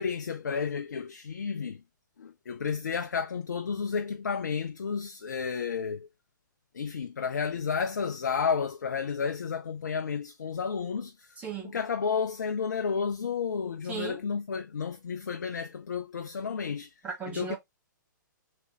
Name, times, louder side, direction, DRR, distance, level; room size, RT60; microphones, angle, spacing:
voice 1, 0.0-1.8 2.2-6.1 6.7-11.3 11.6-16.9 17.4-17.6, left 6 dB, 60° left, 0.4 m, -31 dB
voice 2, 11.4-11.7 13.8-14.2 17.0-17.6, right 7 dB, 15° right, 1.3 m, -36 dB
3.2 x 2.8 x 3.3 m
figure-of-eight pair, 120°, 11 cm